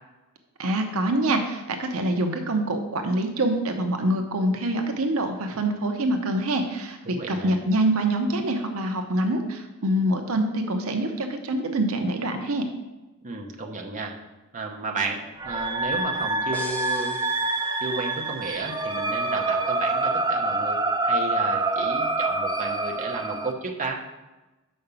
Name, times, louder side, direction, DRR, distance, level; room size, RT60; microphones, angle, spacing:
voice 1, 0.6-12.6, right 1 dB, 70° right, 5 dB, 0.8 m, -25 dB
voice 2, 7.1-7.6 13.2-14.1 14.5-17.2 17.8-20.8 21.0-24.0, right 3 dB, 35° right, 1 dB, 0.9 m, -33 dB
sound 1, 15.4-23.5, right 2 dB, 20° right, 0.5 m, -26 dB
sound 2, 16.5-18.3, equal, 5° left, 1.1 m, -40 dB
5.8 x 5.4 x 6.8 m, 1.1 s
head